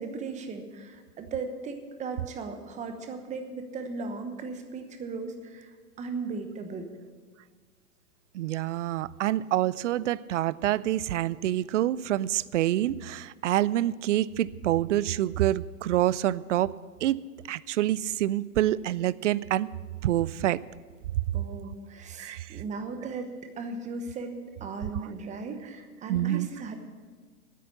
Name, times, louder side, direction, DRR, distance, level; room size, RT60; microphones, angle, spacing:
voice 1, 0.0-5.7 6.0-6.9 21.3-24.3 24.6-26.7, right 4 dB, 15° right, 7 dB, 1.0 m, -37 dB
voice 2, 8.3-16.7 17.0-17.2 17.5-19.7 20.0-20.6 22.2-22.6 24.9-25.0 26.1-26.5, right 13 dB, 55° right, 20 dB, 0.5 m, -27 dB
9.6 x 8.4 x 9.8 m, 1.5 s
hypercardioid pair, 120°, 46 cm